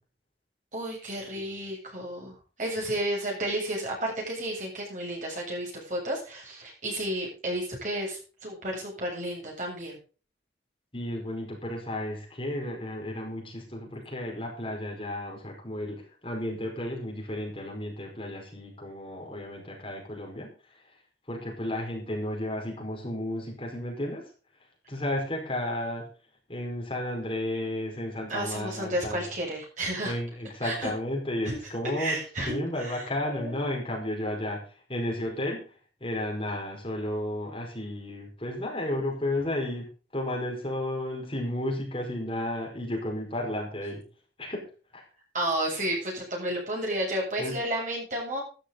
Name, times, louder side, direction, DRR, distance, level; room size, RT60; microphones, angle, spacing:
voice 1, 0.7-10.0 28.3-30.1 30.6-30.9 31.5-31.6 31.8-33.7 45.3-48.4, right 1 dB, 45° right, -1 dB, 8.0 m, -32 dB
voice 2, 10.9-20.5 21.3-24.2 24.9-26.0 26.5-29.3 30.0-32.2 32.5-34.6 34.9-35.7 36.0-39.9 40.1-44.0 44.4-44.6 44.9-45.0 47.4-47.5, left 1 dB, 30° left, 0 dB, 5.0 m, -33 dB
13.5 x 13.0 x 4.0 m, 0.37 s
head